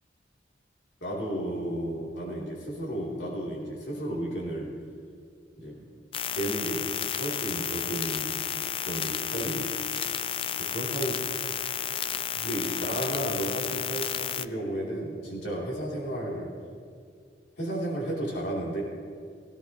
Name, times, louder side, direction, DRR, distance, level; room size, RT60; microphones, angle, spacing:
voice 1, 1.0-4.7 5.5-5.8 6.3-8.4 8.8-9.7 10.7-11.2 12.3-16.5 17.6-18.8, right 1 dB, 80° left, -4 dB, 3.2 m, -33 dB
sound 1, 6.1-14.4, left 9 dB, 30° left, 0.3 m, -32 dB
17.5 x 16.0 x 3.0 m, 2.2 s
head